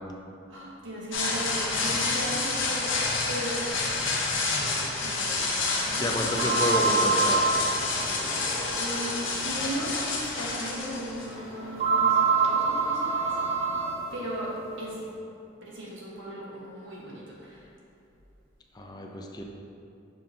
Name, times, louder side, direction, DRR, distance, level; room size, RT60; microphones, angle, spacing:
voice 1, 0.5-4.1 4.6-7.5 8.8-13.4 14.1-15.0 15.6-17.7, right 1 dB, 70° right, -5 dB, 1.3 m, -37 dB
sound 1, 1.1-11.8, left 3 dB, 70° left, 1.0 m, -29 dB
voice 2, 6.0-7.5 18.7-19.4, left 1 dB, 20° left, 1 dB, 0.5 m, -29 dB
sound 2, 6.4-8.4 9.1-9.2 9.8-9.9 11.8-14.2, right 4 dB, 35° right, 0.5 m, -25 dB
7.5 x 5.2 x 2.8 m, 2.7 s
head